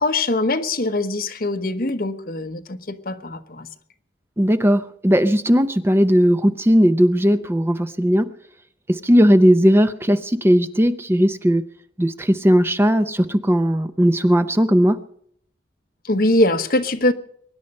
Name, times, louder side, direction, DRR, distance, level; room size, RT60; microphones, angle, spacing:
voice 1, 0.0-3.7 16.1-17.1, left 2 dB, 55° left, 1.1 m, -22 dB
voice 2, 4.4-8.3 8.9-11.6 12.0-15.0, equal, 15° right, 0.6 m, -17 dB
23.5 x 9.9 x 5.4 m
head